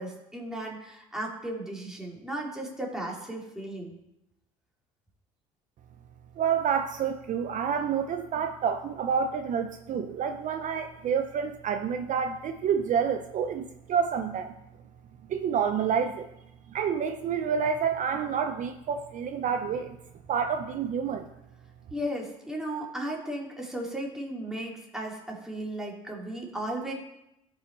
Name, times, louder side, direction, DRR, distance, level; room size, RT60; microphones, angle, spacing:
voice 1, 0.0-4.0 21.9-26.9, right 1 dB, 5° right, -2 dB, 2.9 m, -35 dB
voice 2, 6.4-14.5 15.3-16.3 16.7-20.0 20.3-21.2, right 7 dB, 50° right, 8 dB, 0.7 m, -28 dB
14.0 x 5.7 x 4.1 m, 0.87 s
supercardioid pair, 80°, 16 cm